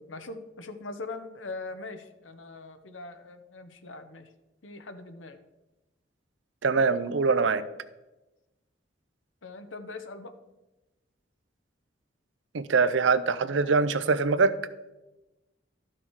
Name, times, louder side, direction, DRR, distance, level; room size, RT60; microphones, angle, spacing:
voice 1, 0.0-4.3 4.6-5.4 9.4-10.3, left 3 dB, 85° left, 8 dB, 0.9 m, -41 dB
voice 2, 6.6-7.6 12.5-14.5, right 4 dB, 80° right, 14 dB, 0.6 m, -23 dB
13.0 x 6.0 x 4.7 m, 1.0 s
head